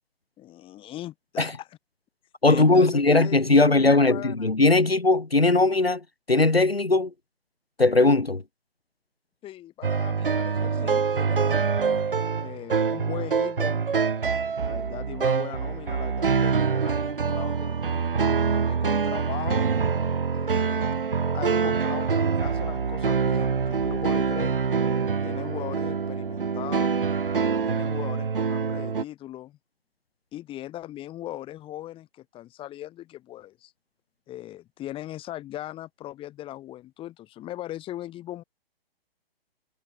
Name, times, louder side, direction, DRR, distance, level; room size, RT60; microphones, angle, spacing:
voice 1, 0.4-1.7 2.4-4.5 9.4-11.8 12.3-13.9 14.6-17.9 18.6-19.8 20.3-21.0 21.3-24.6 25.2-27.0 27.6-29.6 30.3-33.7 34.3-38.4, left 14 dB, 15° left, 6.2 m, -39 dB
voice 2, 2.4-7.1 7.8-8.4, left 2 dB, 80° left, 2.5 m, -19 dB
sound 1, 9.8-29.0, right 5 dB, 65° right, 2.5 m, -25 dB
figure-of-eight pair, 125°, 30 cm